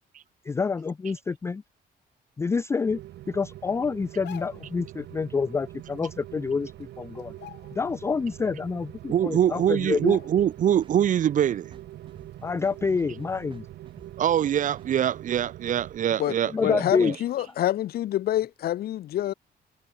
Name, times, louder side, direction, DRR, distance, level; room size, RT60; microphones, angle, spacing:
voice 1, 0.4-1.6 2.4-3.0 3.3-7.3 7.8-10.2 12.4-13.7 16.5-17.1, left 5 dB, 15° left, 0.3 m, -27 dB
Rain, 2.8-16.0, right 14 dB, 85° right, 0.9 m, -44 dB
sound 1, 4.1-4.8 6.2-6.3 6.7-6.9 7.3-8.1 8.5-8.6 9.4-9.5 10.0-10.7 11.0-11.2, left 14 dB, 85° left, 1.6 m, -47 dB
voice 2, 9.1-11.7 14.2-17.1, right 10 dB, 50° right, 0.9 m, -24 dB
sound 2, 10.4-17.6, right 6 dB, 30° right, 2.0 m, -53 dB
voice 3, 16.6-19.3, left 13 dB, 65° left, 0.8 m, -27 dB
cardioid pair, 165°, 17 cm